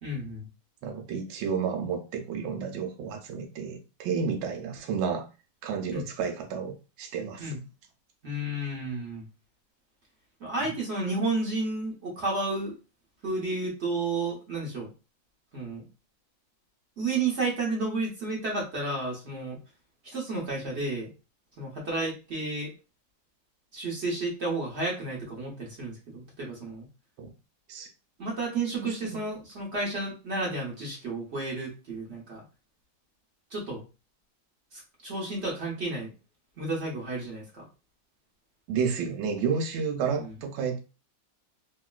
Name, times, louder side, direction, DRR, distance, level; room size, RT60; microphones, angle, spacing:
voice 1, 0.0-0.5 5.9-6.0 7.4-7.6 8.2-9.2 10.4-12.7 13.2-14.9 15.5-15.9 17.0-19.6 20.1-21.1 21.6-22.7 23.7-26.9 28.2-32.4 33.5-33.8 34.7-36.1 36.6-37.7 40.2-40.3, right 2 dB, 50° right, 0.9 m, -32 dB
voice 2, 0.8-5.3 5.6-7.6 27.2-27.3 27.7-27.9 28.8-29.2 38.7-40.8, right 6 dB, 75° right, 1.3 m, -31 dB
3.0 x 2.8 x 2.3 m
omnidirectional pair, 2.2 m